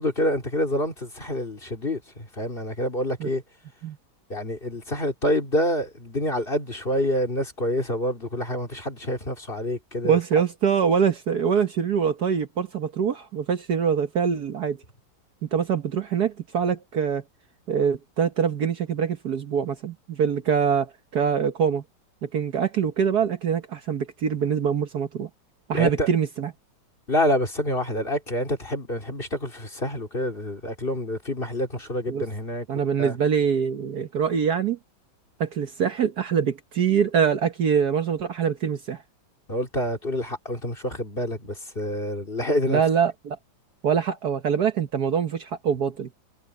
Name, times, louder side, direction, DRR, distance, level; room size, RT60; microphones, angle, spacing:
voice 1, 0.0-3.4 4.3-10.2 25.7-26.1 27.1-32.7 33.0-33.2 39.5-42.8, equal, 30° left, 3.4 m, -27 dB
voice 2, 10.0-14.8 15.4-17.2 17.7-21.8 22.2-25.3 25.7-26.5 32.1-32.2 32.7-34.8 35.4-39.0 42.7-43.4 43.8-46.1, right 7 dB, 60° right, 1.6 m, -24 dB
omnidirectional pair, 2.0 m